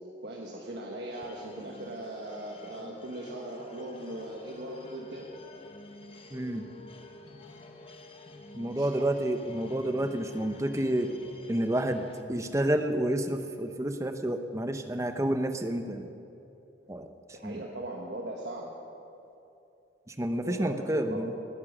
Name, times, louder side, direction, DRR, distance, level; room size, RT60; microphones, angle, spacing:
voice 1, 0.2-5.3 8.8-9.1 17.3-18.7 20.4-21.2, right 1 dB, 70° right, -1 dB, 1.4 m, -39 dB
sound 1, 1.1-12.2, left 1 dB, 30° left, 1.0 m, -49 dB
voice 2, 6.3-6.7 8.5-11.1 11.5-16.1 16.9-17.1 17.4-17.6 20.1-21.3, right 1 dB, 15° right, 7 dB, 0.8 m, -29 dB
20.0 x 10.5 x 6.2 m, 2.8 s
head